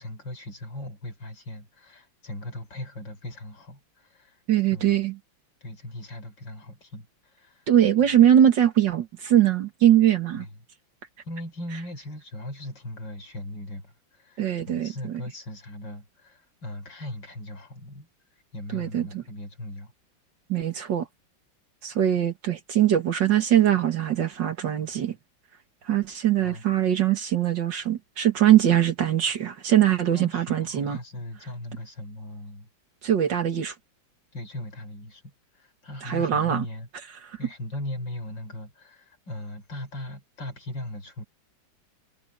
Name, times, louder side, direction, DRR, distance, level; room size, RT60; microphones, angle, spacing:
voice 1, 0.0-4.4 4.7-5.0 5.6-7.7 10.3-10.5 11.2-18.1 18.5-19.9 26.4-26.6 30.1-32.7 34.3-36.9 37.4-41.2, left 1 dB, 65° left, 5.8 m, -38 dB
voice 2, 4.5-5.2 7.7-10.5 14.4-15.2 18.7-19.2 20.5-21.1 21.8-25.2 25.8-31.0 33.0-33.7 36.0-36.7 37.2-37.4, right 11 dB, 65° right, 2.2 m, -22 dB
omnidirectional pair, 2.1 m